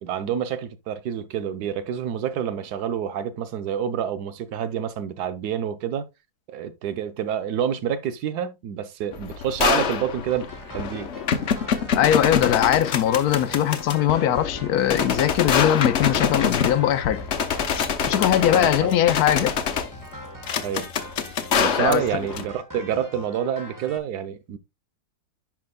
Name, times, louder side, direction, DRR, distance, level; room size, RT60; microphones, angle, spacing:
voice 1, 0.0-6.1 6.5-10.5 10.7-11.1 18.3-19.0 20.6-20.9 21.5-24.6, right 9 dB, 85° right, 1.3 m, -28 dB
sound 1, 9.1-22.5, left 7 dB, 55° left, 1.0 m, -26 dB
sound 2, 10.3-24.0, right 1 dB, 15° right, 0.8 m, -42 dB
voice 2, 11.9-17.2 18.1-19.5 21.8-22.0, left 11 dB, 75° left, 1.1 m, -21 dB
10.5 x 4.9 x 2.2 m
omnidirectional pair, 1.7 m